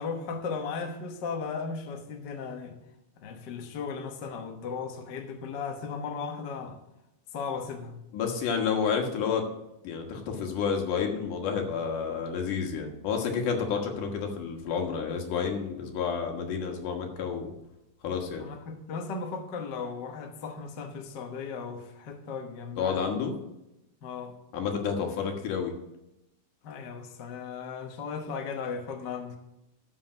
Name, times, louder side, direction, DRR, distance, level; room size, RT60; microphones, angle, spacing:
voice 1, 0.0-2.8 3.2-6.8 7.3-8.0 18.4-23.0 24.0-24.3 26.6-29.4, left 5 dB, 55° left, 4 dB, 1.2 m, -36 dB
voice 2, 8.1-9.4 9.8-17.5 18.0-18.5 22.8-23.3 24.5-25.7, left 6 dB, 85° left, 3 dB, 3.0 m, -30 dB
13.0 x 5.6 x 5.8 m, 0.89 s
omnidirectional pair, 3.5 m